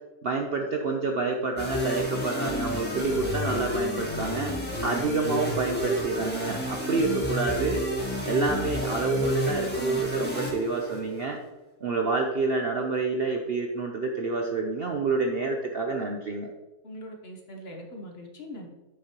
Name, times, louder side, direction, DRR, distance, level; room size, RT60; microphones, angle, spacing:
voice 1, 0.2-4.5 4.8-7.8 8.2-11.4 11.8-16.5, right 3 dB, 55° right, 2 dB, 0.7 m, -28 dB
sound 1, 1.6-11.2, equal, 5° left, 1.3 m, -30 dB
voice 2, 16.8-18.7, equal, 45° left, 2 dB, 1.1 m, -42 dB
7.5 x 6.3 x 2.9 m, 1.1 s
omnidirectional pair, 1.6 m